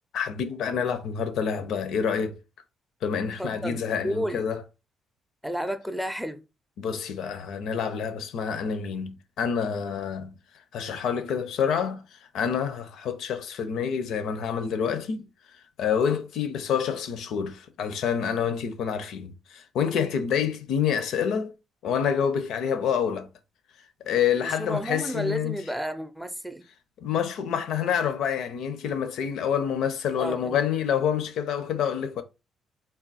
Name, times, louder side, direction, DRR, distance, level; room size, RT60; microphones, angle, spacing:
voice 1, 0.1-2.4 3.0-4.6 6.8-10.3 10.7-15.3 15.8-21.5 21.8-23.3 24.0-25.6 27.0-32.2, left 7 dB, 80° left, 0.7 m, -27 dB
voice 2, 3.4-4.4 5.4-6.4 24.4-26.6 30.2-30.6 30.9-31.0, equal, ahead, 0.5 m, -32 dB
3.6 x 2.3 x 4.1 m
cardioid pair, 90°, 0 cm